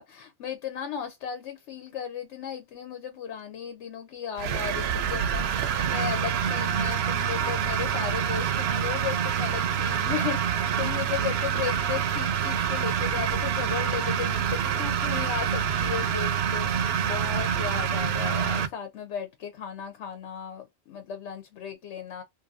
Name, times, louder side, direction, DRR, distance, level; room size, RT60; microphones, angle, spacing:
voice 1, 0.0-22.2, left 9 dB, 85° left, 0.9 m, -35 dB
sound 1, 4.4-18.7, right 8 dB, 70° right, 0.8 m, -26 dB
2.7 x 2.6 x 2.4 m
omnidirectional pair, 1.2 m